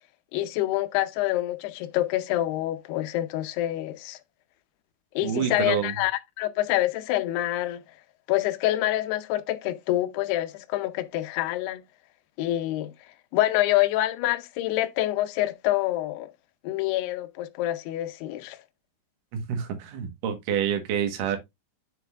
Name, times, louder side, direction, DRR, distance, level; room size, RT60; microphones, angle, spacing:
voice 1, 0.3-4.2 5.2-7.8 8.3-11.8 12.4-12.9 13.3-16.3 16.6-18.6, left 15 dB, 75° left, 2.6 m, -26 dB
voice 2, 5.2-5.9 19.3-21.4, right 8 dB, 60° right, 2.6 m, -28 dB
7.6 x 6.6 x 2.5 m
omnidirectional pair, 5.0 m